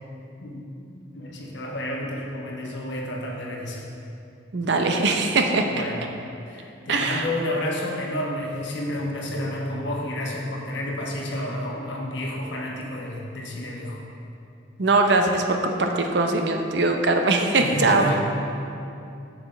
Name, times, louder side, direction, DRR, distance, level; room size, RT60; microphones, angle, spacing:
voice 1, 0.4-3.8 5.5-6.1 6.5-14.0 17.6-18.2, left 1 dB, 65° left, -2 dB, 1.1 m, -30 dB
voice 2, 4.5-5.9 6.9-7.3 14.8-18.2, right 3 dB, 60° right, 4 dB, 0.6 m, -21 dB
8.0 x 6.9 x 3.3 m, 2.7 s
head